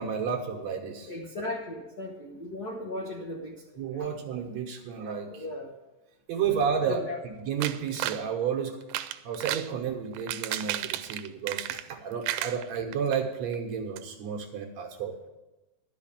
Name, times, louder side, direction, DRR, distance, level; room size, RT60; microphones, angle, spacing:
voice 1, 0.0-1.1 3.8-5.4 6.3-8.8 9.2-15.2, right 7 dB, 65° right, 3 dB, 2.1 m, -31 dB
voice 2, 1.1-4.1 5.3-5.8 6.9-7.2, left 1 dB, 70° left, 0 dB, 0.9 m, -37 dB
sound 1, 7.6-8.2 8.8-9.7 10.1-12.0 12.2-13.2 13.5-13.6 14.0-14.1, right 13 dB, 85° right, 2.2 m, -33 dB
11.5 x 5.7 x 8.8 m, 1.0 s
omnidirectional pair, 3.7 m